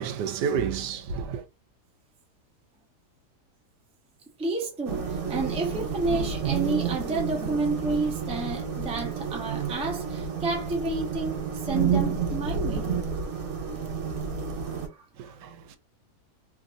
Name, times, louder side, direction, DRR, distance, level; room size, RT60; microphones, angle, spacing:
voice 1, 0.0-1.4 15.2-15.8, right 7 dB, 90° right, 1.2 m, -30 dB
voice 2, 4.4-12.9 14.6-15.4, right 3 dB, 5° right, 0.4 m, -30 dB
sound 1, 4.9-14.9, right 6 dB, 60° right, 1.3 m, -30 dB
3.2 x 2.6 x 2.5 m
omnidirectional pair, 1.8 m